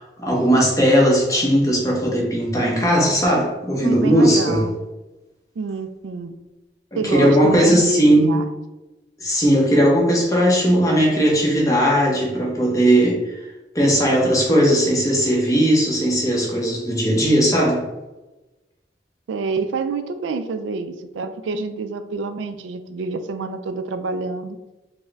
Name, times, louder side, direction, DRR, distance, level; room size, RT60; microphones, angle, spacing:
voice 1, 0.0-4.7 6.9-8.4 9.2-13.4 13.7-17.8, equal, 20° left, -3 dB, 0.9 m, -18 dB
voice 2, 3.8-4.7 5.6-6.3 7.0-8.4 19.3-24.6, right 4 dB, 80° right, 9 dB, 0.3 m, -27 dB
4.4 x 2.1 x 3.4 m, 1.0 s
head